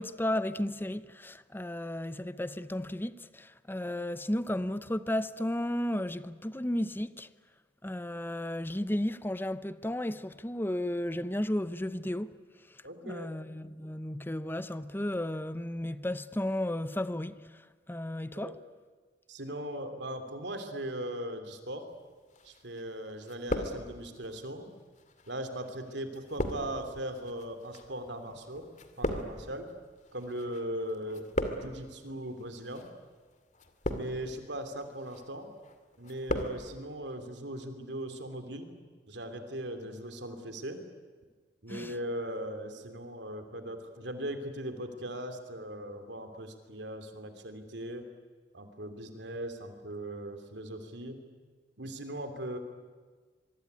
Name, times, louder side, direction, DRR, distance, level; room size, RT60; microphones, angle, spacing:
voice 1, 0.0-7.3 7.8-12.3 13.0-17.4 17.9-18.6 41.7-41.9, left 1 dB, 10° left, 0.8 m, -33 dB
voice 2, 12.8-13.3 18.3-18.6 19.3-21.9 22.4-24.7 25.3-28.7 29.0-29.7 30.1-31.3 31.5-32.9 33.9-35.5 36.0-38.7 39.1-40.8 41.6-48.1 48.5-51.2 51.8-52.6, right 1 dB, 70° right, 3.1 m, -39 dB
sound 1, 22.3-22.9 23.2-24.3 25.0-30.6 30.9-31.9 32.6-32.9 33.5-34.4 34.8-35.2 35.6-36.6 36.8-36.9, left 1 dB, 45° left, 2.3 m, -36 dB
25.0 x 23.0 x 9.6 m
head